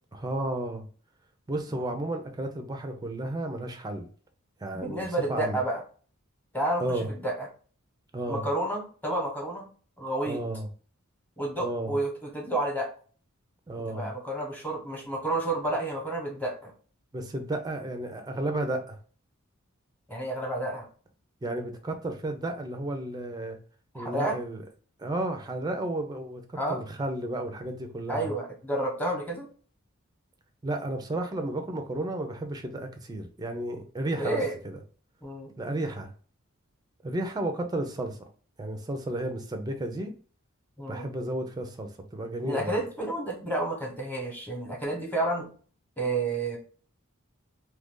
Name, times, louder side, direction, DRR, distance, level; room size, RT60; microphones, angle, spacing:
voice 1, 0.1-0.8 1.5-4.1 4.6-5.0 5.3-5.6 6.8-7.1 8.1-8.4 10.3-10.7 11.6-12.0 13.7-14.1 17.1-19.0 21.4-23.6 23.9-24.6 25.0-26.4 26.7-28.3 30.6-34.8 35.6-36.1 37.0-38.3 38.6-40.1 40.9-42.8, right 1 dB, 20° right, 5 dB, 0.5 m, -32 dB
voice 2, 4.7-5.8 6.5-7.5 8.3-9.7 10.0-10.4 11.4-12.9 13.9-16.7 20.1-20.9 23.9-24.4 26.5-26.8 28.1-29.5 34.1-34.5 35.2-35.6 40.8-41.1 42.4-45.5 46.0-46.6, right 2 dB, 10° left, 0 dB, 1.0 m, -30 dB
2.8 x 2.5 x 3.6 m, 0.42 s
head